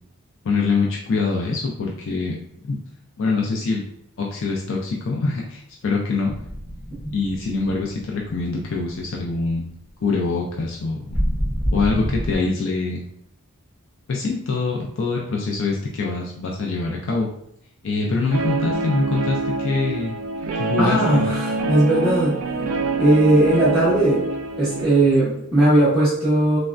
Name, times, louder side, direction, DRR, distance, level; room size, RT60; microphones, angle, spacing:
voice 1, 0.4-2.3 2.6-2.8 3.2-3.8 4.2-6.4 7.1-9.7 10.0-11.1 11.7-13.0 14.1-17.3 17.8-20.1 20.6-21.2, left 3 dB, 60° left, -1 dB, 0.4 m, -24 dB
sound 1, 6.3-9.1 9.4-9.6 11.1-12.4, equal, 40° left, 1.2 m, -27 dB
Guitar, 18.3-24.8, right 3 dB, 65° right, 0.3 m, -25 dB
voice 2, 20.8-22.4 23.0-24.2 24.6-26.6, right 1 dB, ahead, -12 dB, 0.7 m, -18 dB
3.2 x 2.1 x 2.4 m, 0.73 s
head